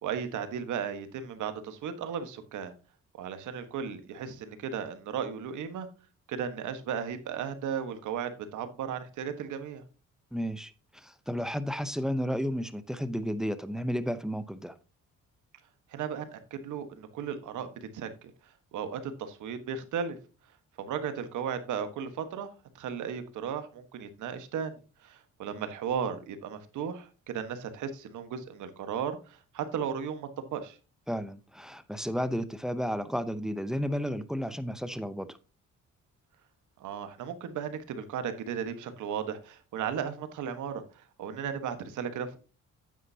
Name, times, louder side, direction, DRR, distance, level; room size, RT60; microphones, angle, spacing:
voice 1, 0.0-2.7 3.2-5.9 6.3-9.8 15.9-20.2 20.8-22.5 22.7-30.8 36.8-42.5, right 7 dB, 80° right, 1.4 m, -35 dB
voice 2, 10.3-14.8 31.1-35.4, equal, ahead, 0.8 m, -32 dB
9.1 x 8.8 x 2.8 m
cardioid pair, 90°, 30 cm